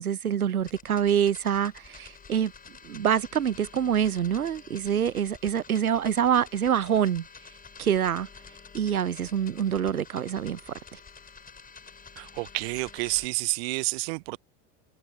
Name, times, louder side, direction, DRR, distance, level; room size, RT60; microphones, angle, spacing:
voice 1, 0.0-2.5 2.8-7.3 7.8-8.3 8.7-10.6 10.9-11.0, right 9 dB, 85° right, 0.7 m, -26 dB
sound 1, 0.6-13.3, left 5 dB, 20° left, 7.2 m, -49 dB
voice 2, 12.2-14.4, right 27 dB, 45° right, 0.4 m, -29 dB
figure-of-eight pair, 80°, 42 cm